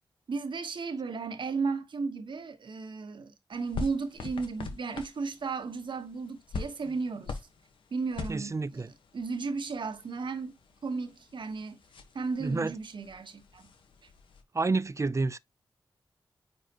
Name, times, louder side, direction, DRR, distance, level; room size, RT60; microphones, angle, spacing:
voice 1, 0.3-7.4 7.9-11.8 12.1-13.7 14.0-14.1, right 4 dB, 70° right, 1.4 m, -35 dB
sound 1, 3.5-14.4, left 4 dB, 90° left, 1.3 m, -44 dB
voice 2, 8.3-8.9 12.4-12.7 14.5-15.4, right 3 dB, 35° right, 0.6 m, -29 dB
9.5 x 4.0 x 3.0 m
cardioid pair, 50°, 8 cm